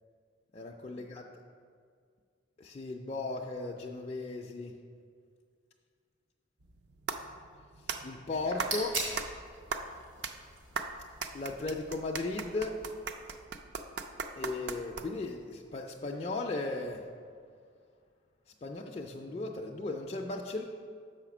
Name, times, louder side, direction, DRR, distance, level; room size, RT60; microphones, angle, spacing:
voice 1, 0.5-1.2 2.6-4.8 7.8-9.0 11.3-12.8 14.4-17.1 18.5-20.6, left 2 dB, 30° left, 0 dB, 0.3 m, -36 dB
sound 1, 6.6-15.4, right 5 dB, 55° right, 0.4 m, -39 dB
sound 2, 8.3-13.5, right 2 dB, 80° right, 1.8 m, -42 dB
6.6 x 4.9 x 5.9 m, 2.1 s
head